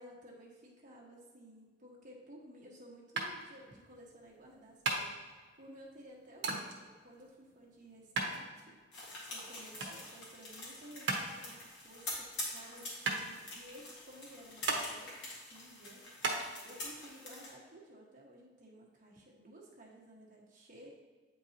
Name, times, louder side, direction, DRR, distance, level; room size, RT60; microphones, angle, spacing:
voice 1, 0.0-5.1 5.6-8.8 9.3-15.2 15.4-16.1 16.6-20.9, right 1 dB, 45° right, -3 dB, 1.5 m, -55 dB
sound 1, 3.2-16.4, right 3 dB, 75° right, 1.0 m, -39 dB
sound 2, 8.9-17.5, left 2 dB, 80° left, 2.0 m, -46 dB
8.5 x 4.5 x 2.8 m, 1.4 s
head